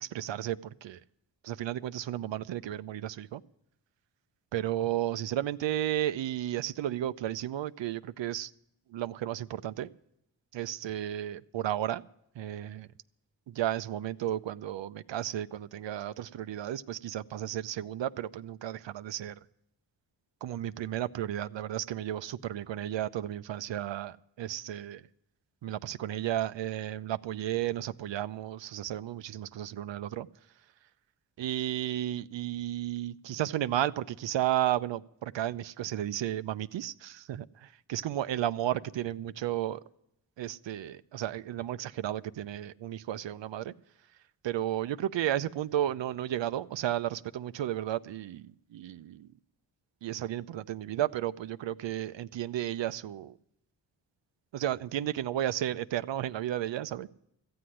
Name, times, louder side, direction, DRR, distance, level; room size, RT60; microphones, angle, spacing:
voice 1, 0.0-1.0 1.4-3.4 4.5-8.5 8.9-9.9 10.5-12.0 12.4-12.9 13.5-19.3 20.4-25.0 25.6-30.3 31.4-39.8 40.4-43.7 44.4-49.3 50.0-53.4 54.5-57.1, right 12 dB, 75° right, 0.6 m, -33 dB
14.5 x 7.8 x 9.9 m
cardioid pair, 55°, 44 cm